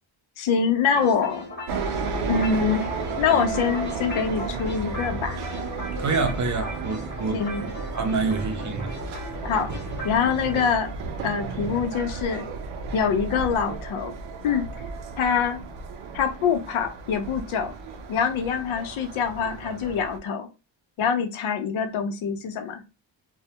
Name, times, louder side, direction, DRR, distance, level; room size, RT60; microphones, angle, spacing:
voice 1, 0.4-1.5 2.3-5.4 7.3-7.7 9.4-9.7 10.0-10.9 11.2-12.4 12.9-14.1 14.4-14.7 15.2-15.6 16.1-17.7 18.1-20.5 21.0-22.8, left 6 dB, 90° left, 0.6 m, -25 dB
sound 1, 0.9-10.7, left 1 dB, 20° left, 0.7 m, -37 dB
sound 2, 1.7-20.2, right 4 dB, 85° right, 0.6 m, -33 dB
voice 2, 6.0-7.4 7.9-8.9, right 4 dB, 40° right, 0.5 m, -26 dB
2.2 x 2.1 x 2.8 m
wide cardioid pair, 150°, 48 cm